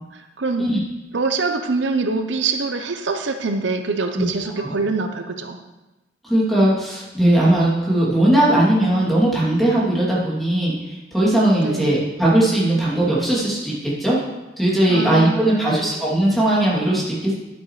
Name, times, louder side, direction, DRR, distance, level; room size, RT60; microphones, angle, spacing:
voice 1, 0.1-0.7 1.1-5.6 11.6-12.0 14.9-15.9, right 3 dB, 80° right, 6 dB, 0.7 m, -24 dB
voice 2, 6.2-14.2 14.6-17.3, right 1 dB, ahead, -7 dB, 2.7 m, -18 dB
11.0 x 9.1 x 3.2 m, 1.0 s
head